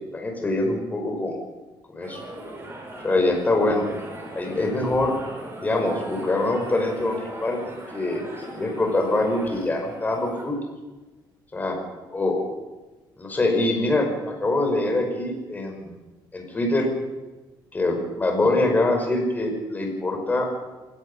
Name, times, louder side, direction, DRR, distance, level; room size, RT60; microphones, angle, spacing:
voice 1, 0.1-1.3 1.9-2.2 3.0-3.9 4.3-5.1 5.6-7.6 7.9-10.6 11.5-11.8 12.1-12.4 13.2-15.9 16.3-16.9 17.7-20.5, left 2 dB, 20° left, 2 dB, 5.5 m, -24 dB
sound 1, 2.0-10.4, right 1 dB, 30° right, 6.6 m, -39 dB
27.5 x 17.0 x 5.6 m, 1.2 s
cardioid pair, 130°, 9 cm